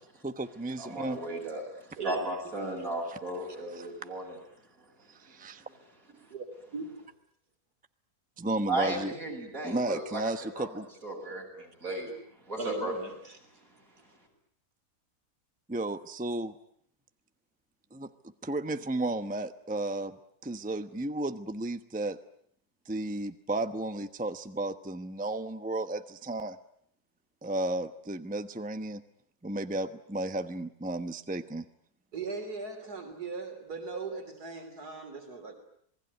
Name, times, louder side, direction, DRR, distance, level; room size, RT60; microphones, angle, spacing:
voice 1, 0.2-1.2 3.1-3.2 3.7-3.9 5.1-5.6 8.4-9.1 9.6-10.9 15.7-16.5 17.9-18.1 18.4-20.2 20.4-22.2 22.9-26.6 27.4-29.0 29.4-31.7, right 2 dB, 5° right, 0.8 m, -33 dB
voice 2, 0.8-4.4 4.8-4.9 5.3-5.4 8.7-12.1 12.5-12.9, right 2 dB, 60° right, 7.9 m, -35 dB
voice 3, 6.3-6.9 12.6-13.4 32.1-35.5, right 4 dB, 85° right, 3.8 m, -39 dB
27.5 x 20.0 x 9.3 m
omnidirectional pair, 1.6 m